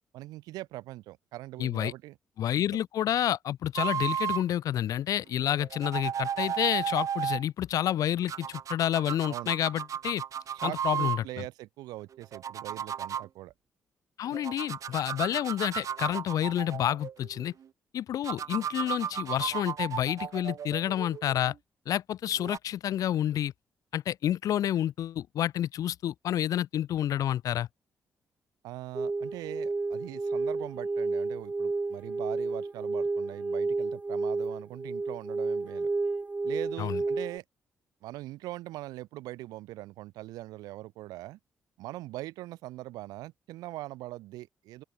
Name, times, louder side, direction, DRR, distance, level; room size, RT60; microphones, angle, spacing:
voice 1, 0.1-2.2 2.6-2.7 9.3-9.5 10.5-13.5 14.3-14.4 28.6-35.9 36.4-37.4 38.0-41.4 41.8-44.8, right 17 dB, 80° right, 1.6 m, -41 dB
voice 2, 1.6-1.9 2.4-10.2 10.6-11.4 14.2-17.5 17.9-21.5 21.9-23.5 23.9-27.7 36.8-37.0, left 11 dB, 65° left, 0.4 m, -29 dB
sound 1, 3.8-4.4 5.5-7.4 8.3-11.2 12.1-13.3 14.3-17.5 18.2-21.5 22.4-22.6, right 8 dB, 60° right, 0.7 m, -34 dB
sound 2, 28.9-37.4, right 3 dB, 20° right, 0.4 m, -31 dB
open air
hypercardioid pair, 40°, 6 cm